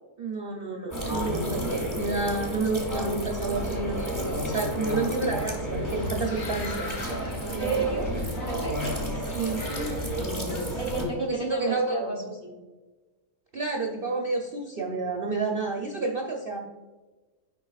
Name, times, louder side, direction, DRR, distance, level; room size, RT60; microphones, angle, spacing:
voice 1, 0.2-6.9 7.5-8.3 9.3-9.6 11.2-12.2 13.5-16.6, right 3 dB, 50° right, 0 dB, 0.7 m, -30 dB
sound 1, 0.9-11.0, equal, 20° left, 1.3 m, -31 dB
sound 2, 4.8-10.9, left 2 dB, 60° left, 1.7 m, -41 dB
voice 2, 7.6-8.1 8.4-9.4 10.8-12.5, right 4 dB, 40° left, -1 dB, 1.4 m, -32 dB
7.9 x 5.3 x 2.3 m, 1.2 s
omnidirectional pair, 1.6 m